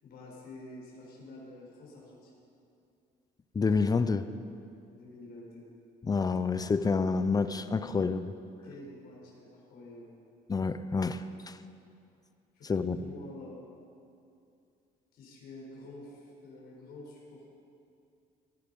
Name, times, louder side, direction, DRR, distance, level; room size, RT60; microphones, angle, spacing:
voice 1, 0.0-2.4 4.9-5.7 8.6-10.1 12.5-13.6 15.1-17.5, left 2 dB, 70° left, -2 dB, 4.4 m, -48 dB
voice 2, 3.5-4.3 6.1-8.3 10.5-11.6 12.6-13.0, left 4 dB, 20° left, 12 dB, 0.6 m, -28 dB
18.5 x 9.8 x 5.3 m, 2.5 s
cardioid pair, 110°, 17 cm